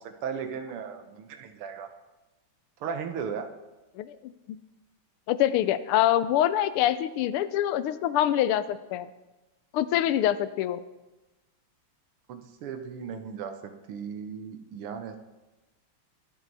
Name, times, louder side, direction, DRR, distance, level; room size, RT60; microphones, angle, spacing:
voice 1, 0.0-1.9 2.8-3.5 12.3-15.2, right 6 dB, 90° right, 7 dB, 1.9 m, -36 dB
voice 2, 3.9-4.6 5.3-9.1 9.7-10.8, left 12 dB, 85° left, 14 dB, 1.6 m, -25 dB
22.0 x 7.7 x 4.1 m, 1.1 s
omnidirectional pair, 2.4 m